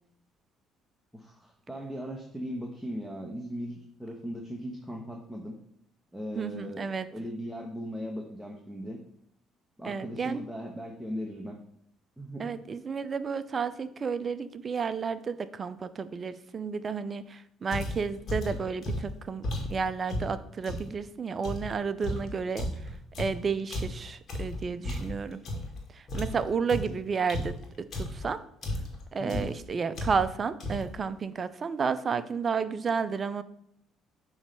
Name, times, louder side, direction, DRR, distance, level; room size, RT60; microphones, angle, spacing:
voice 1, 1.1-5.6 6.1-9.0 9.8-11.6 12.2-12.5 24.8-25.0 29.2-29.5, equal, ahead, 0 dB, 1.1 m, -38 dB
voice 2, 6.4-7.1 9.8-10.4 12.4-22.7 23.2-25.4 25.9-28.4 29.1-33.4, right 5 dB, 40° right, 14 dB, 0.5 m, -32 dB
sound 1, 17.7-20.9 21.4-25.8 26.1-28.3 28.6-29.0 29.3-29.6 29.9-30.3 30.6-31.0, left 1 dB, 50° left, 1.9 m, -34 dB
7.1 x 3.2 x 5.3 m, 0.75 s
hypercardioid pair, 55°, 0 cm